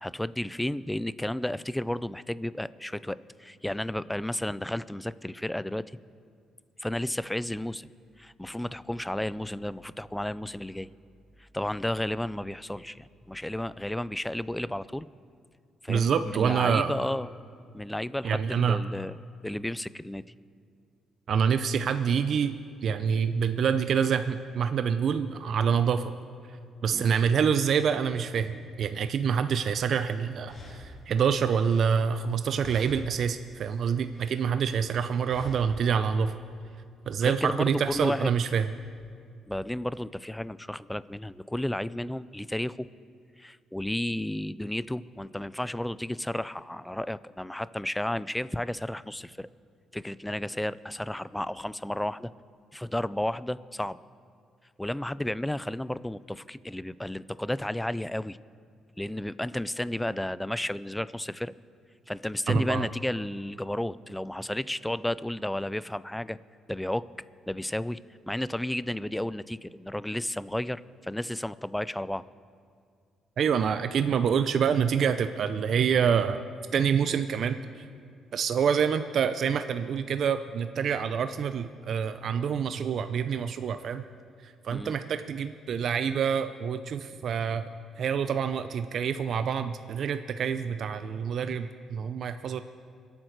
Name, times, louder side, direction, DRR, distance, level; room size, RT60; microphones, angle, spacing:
voice 1, 0.0-5.8 6.8-7.9 8.2-10.9 11.4-15.1 15.8-17.3 17.7-19.2 19.4-20.2 26.9-27.1 37.2-38.3 39.5-42.9 43.4-49.5 49.9-52.3 52.7-54.0 54.8-58.4 59.0-61.5 62.1-66.4 66.7-67.1 67.5-68.0 68.3-72.2 84.7-84.9, left 1 dB, 5° left, 17 dB, 0.4 m, -32 dB
voice 2, 15.9-17.0 18.2-18.8 21.3-26.0 26.8-36.3 37.1-38.7 62.5-62.9 73.4-76.4 76.7-77.6 78.3-84.0 84.6-87.6 88.0-92.6, right 7 dB, 60° right, 10 dB, 0.5 m, -26 dB
sound 1, 29.9-30.0 30.4-32.3 32.6-33.3 33.6-34.5 35.2-35.9, equal, 45° left, 3.5 m, -46 dB
25.0 x 8.8 x 4.6 m, 2.2 s
cardioid pair, 90°, 0 cm